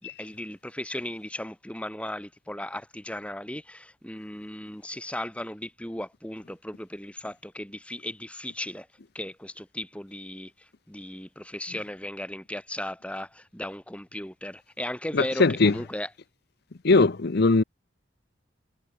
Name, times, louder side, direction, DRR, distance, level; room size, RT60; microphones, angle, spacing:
voice 1, 0.0-8.9 9.1-16.1, left 1 dB, 5° left, 4.4 m, -36 dB
voice 2, 15.1-15.7 16.8-17.6, left 3 dB, 55° left, 0.7 m, -20 dB
head